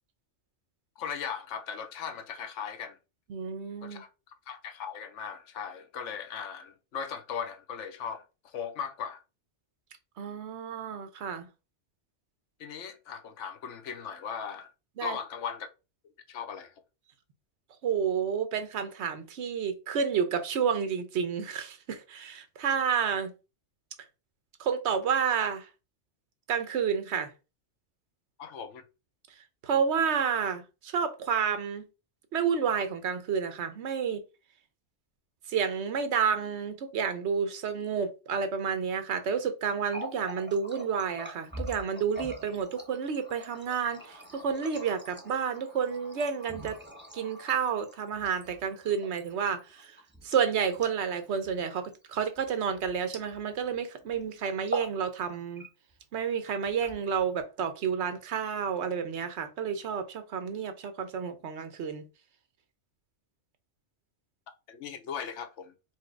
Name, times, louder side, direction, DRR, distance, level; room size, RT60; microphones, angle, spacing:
voice 1, 1.0-3.0 3.8-4.1 4.5-8.2 8.5-9.2 12.6-14.7 15.0-15.7 16.3-16.7 28.4-28.9 64.7-65.7, left 7 dB, 80° left, 1.0 m, -38 dB
voice 2, 3.3-4.0 10.2-11.5 15.0-15.2 17.8-23.3 24.6-25.7 26.5-27.3 29.6-31.9 32.3-34.2 35.5-46.8 47.1-49.9 50.2-55.6 56.1-62.0, right 7 dB, 70° right, 1.0 m, -30 dB
Water tap faucet, 39.7-53.7 54.0-54.2 54.6-55.0 55.3-56.0 56.6-57.4, equal, 10° right, 0.7 m, -44 dB
4.6 x 2.2 x 4.4 m
omnidirectional pair, 1.2 m